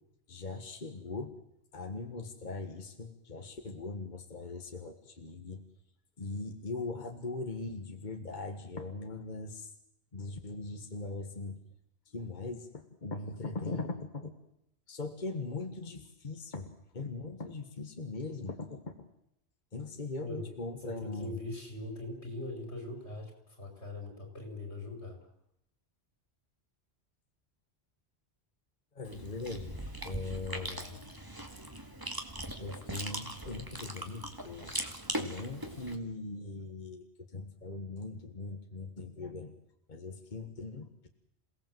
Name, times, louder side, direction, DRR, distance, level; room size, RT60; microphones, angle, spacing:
voice 1, 0.3-1.3 1.7-5.6 6.2-9.7 10.1-11.6 12.1-14.3 14.9-19.1 19.7-21.4 28.9-29.8 30.0-31.0 32.6-34.7 35.2-39.5 39.9-41.1, left 3 dB, 45° left, 5 dB, 1.7 m, -40 dB
voice 2, 20.8-25.2, left 2 dB, 85° left, 4 dB, 5.4 m, -41 dB
Chewing mastication, 29.0-36.0, right 1 dB, 20° right, 2.1 m, -40 dB
27.5 x 18.0 x 7.8 m, 0.79 s
omnidirectional pair, 1.1 m